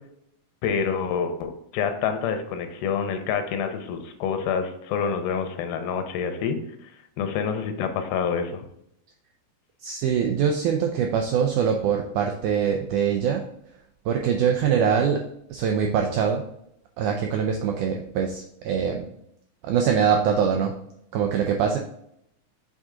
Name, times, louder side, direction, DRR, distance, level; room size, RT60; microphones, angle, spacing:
voice 1, 0.6-6.6 7.2-8.6, left 6 dB, 85° left, 7 dB, 2.6 m, -27 dB
voice 2, 9.8-13.4 14.1-15.2 15.5-16.4 17.0-19.1 19.6-20.7 21.1-21.8, right 7 dB, 90° right, 3 dB, 1.7 m, -23 dB
7.8 x 3.7 x 3.7 m, 0.74 s
omnidirectional pair, 4.2 m